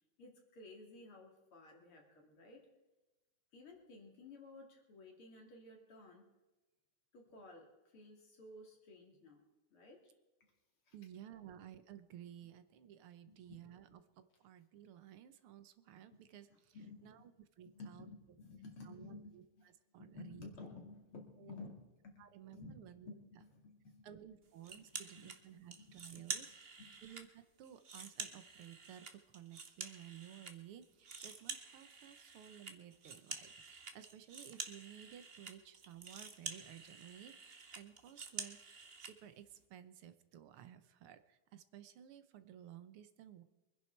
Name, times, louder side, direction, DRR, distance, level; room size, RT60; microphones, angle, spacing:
voice 1, 0.2-2.7 3.5-6.3 7.1-9.4 9.7-10.1 10.9-11.5 13.3-13.6 16.5-17.3 17.6-19.7 20.0-24.4 24.7-26.9, left 3 dB, 75° left, 1 dB, 3.4 m, -55 dB
voice 2, 10.9-16.8 17.0-17.3 17.6-18.1 18.9-19.4 19.9-20.5 21.4-21.6 22.2-23.1 24.0-26.5 27.0-43.4, right 10 dB, 80° right, 11 dB, 1.8 m, -55 dB
sound 1, 24.6-25.4 25.7-27.2 27.6-30.5 30.8-39.1, right 4 dB, 35° right, 1.0 m, -48 dB
23.5 x 10.5 x 4.6 m, 1.1 s
omnidirectional pair, 2.4 m